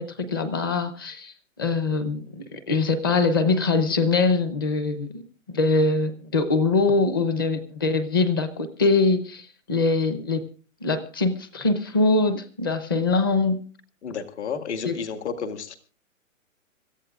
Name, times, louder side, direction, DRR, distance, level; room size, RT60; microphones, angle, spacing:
voice 1, 0.0-1.3 1.6-5.2 5.5-10.5 10.8-13.6 14.8-15.0, left 3 dB, 15° left, 11 dB, 0.7 m, -23 dB
voice 2, 14.0-15.7, left 6 dB, 55° left, 8 dB, 2.0 m, -31 dB
26.0 x 14.5 x 2.4 m, 0.39 s
hypercardioid pair, 180°, 41 cm